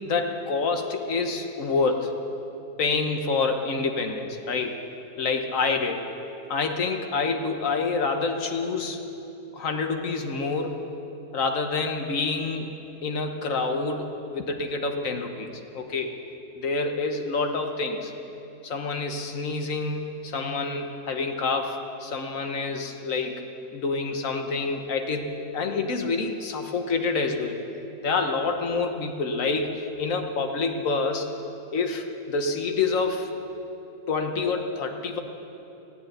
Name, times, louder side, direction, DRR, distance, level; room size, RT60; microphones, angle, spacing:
voice 1, 0.0-2.1 2.8-4.8 5.2-6.0 6.5-9.0 9.5-10.8 11.3-12.7 13.0-16.1 16.5-18.1 18.6-23.4 23.7-27.6 28.0-31.3 31.7-33.3 34.1-35.2, left 4 dB, 65° left, 4 dB, 1.6 m, -27 dB
15.5 x 9.4 x 9.1 m, 2.9 s
omnidirectional pair, 1.5 m